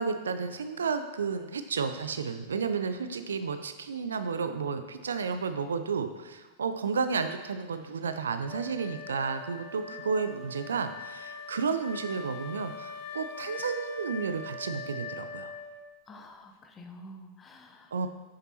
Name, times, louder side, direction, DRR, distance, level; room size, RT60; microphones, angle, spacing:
voice 1, 0.0-15.5 17.9-18.1, right 5 dB, 70° right, 9 dB, 0.5 m, -32 dB
Wind instrument woodwind instrument, 8.5-16.0, left 4 dB, 50° left, 1.0 m, -42 dB
voice 2, 9.7-10.1 16.1-17.9, left 1 dB, 20° left, 5 dB, 0.8 m, -49 dB
8.7 x 6.7 x 2.9 m, 1.2 s
figure-of-eight pair, 90°, 0 cm